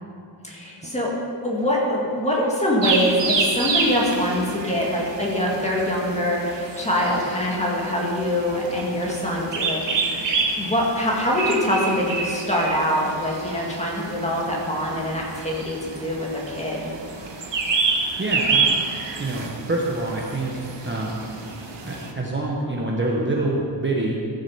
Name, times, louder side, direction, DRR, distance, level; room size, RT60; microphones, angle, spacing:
voice 1, 0.4-1.1 1.4-10.2 10.6-16.9, left 1 dB, 15° left, -4 dB, 2.1 m, -24 dB
sound 1, 2.8-22.1, right 4 dB, 70° right, 1.2 m, -28 dB
voice 2, 18.2-18.9 19.2-21.2 21.9-24.2, right 2 dB, 25° right, -3 dB, 1.0 m, -26 dB
14.5 x 6.7 x 5.6 m, 2.4 s
wide cardioid pair, 165°, 45 cm